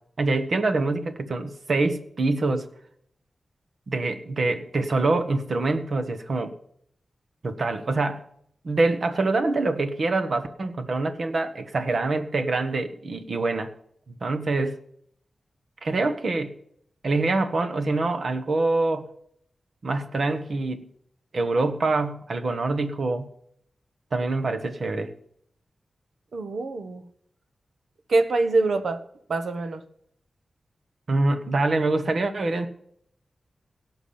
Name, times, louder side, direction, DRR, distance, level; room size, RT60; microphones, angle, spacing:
voice 1, 0.2-2.7 3.9-6.6 7.4-8.2 8.6-13.7 14.1-14.8 15.8-16.5 17.0-19.1 19.8-20.9 21.3-23.3 24.1-25.1 31.1-32.7, right 3 dB, 50° right, 8 dB, 1.3 m, -25 dB
voice 2, 26.3-27.0 28.1-29.0 29.3-29.8, right 3 dB, 70° right, 9 dB, 1.2 m, -24 dB
17.0 x 6.1 x 8.7 m, 0.68 s
wide cardioid pair, 170°, 0 cm